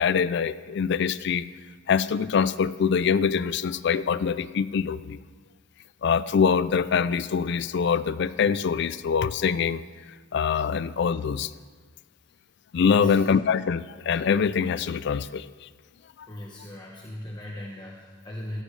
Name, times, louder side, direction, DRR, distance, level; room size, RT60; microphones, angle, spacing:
voice 1, 0.0-1.5 1.9-5.2 6.0-9.8 10.3-11.5 12.7-15.7 16.2-16.3, left 6 dB, 60° left, 15 dB, 0.4 m, -24 dB
voice 2, 12.8-13.2 16.3-18.6, left 1 dB, 20° left, -2 dB, 1.0 m, -38 dB
16.0 x 13.0 x 3.2 m, 1.5 s
head